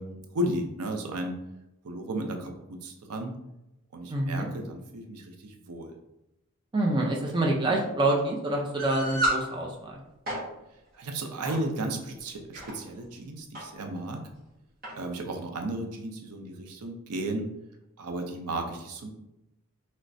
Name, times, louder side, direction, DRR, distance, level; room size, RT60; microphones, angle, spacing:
voice 1, 0.0-1.4 1.8-3.3 3.9-6.0 10.9-14.2 15.0-17.5 18.0-19.1, right 1 dB, 85° right, 4 dB, 0.5 m, -34 dB
voice 2, 4.1-4.4 6.7-9.9, right 2 dB, 20° right, -1 dB, 0.4 m, -26 dB
sound 1, 8.8-9.4 10.1-10.4 11.4-11.6 12.3-12.7 13.5-13.7 14.0-14.1 14.8-15.0, right 1 dB, 40° right, 1.5 m, -30 dB
3.1 x 3.1 x 2.6 m, 0.90 s
head